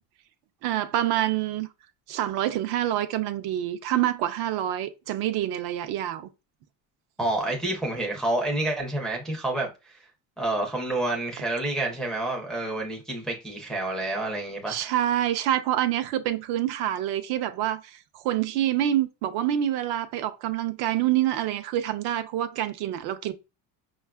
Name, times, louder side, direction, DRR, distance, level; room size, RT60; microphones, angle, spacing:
voice 1, 0.6-1.7 2.1-6.3 14.7-23.3, right 12 dB, 70° right, 0.6 m, -27 dB
voice 2, 7.2-10.0 10.4-14.9, right 2 dB, ahead, 0.4 m, -29 dB
5.4 x 2.3 x 2.2 m
cardioid pair, 160°, 41 cm